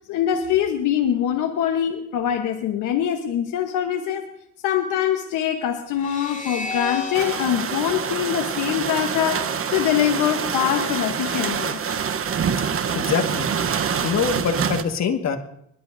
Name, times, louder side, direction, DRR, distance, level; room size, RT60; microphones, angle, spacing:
voice 1, 0.1-4.3 4.6-11.8, left 10 dB, 90° left, 1.1 m, -23 dB
sound 1, 5.9-9.2, left 4 dB, 25° left, 2.8 m, -33 dB
sound 2, 7.1-14.8, right 7 dB, 45° right, 1.0 m, -26 dB
voice 2, 12.9-13.5 14.0-15.4, left 6 dB, 60° left, 1.8 m, -24 dB
26.0 x 11.5 x 2.7 m
cardioid pair, 90°, 30 cm